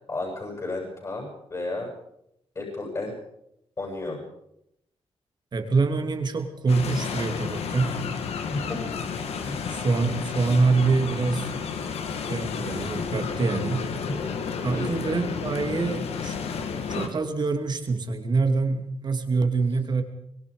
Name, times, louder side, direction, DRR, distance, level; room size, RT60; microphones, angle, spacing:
voice 1, 0.1-1.9 2.5-3.1 3.8-4.2 8.5-8.8 9.4-9.7 14.7-15.0, left 2 dB, 30° left, 0 dB, 7.9 m, -33 dB
voice 2, 5.5-8.1 9.7-11.5 12.3-13.9 14.6-16.4 16.9-20.0, right 4 dB, 45° right, 6 dB, 2.8 m, -25 dB
sound 1, 6.7-17.1, left 6 dB, 90° left, 2.5 m, -31 dB
25.0 x 22.0 x 5.2 m, 0.79 s
cardioid pair, 115°, 10 cm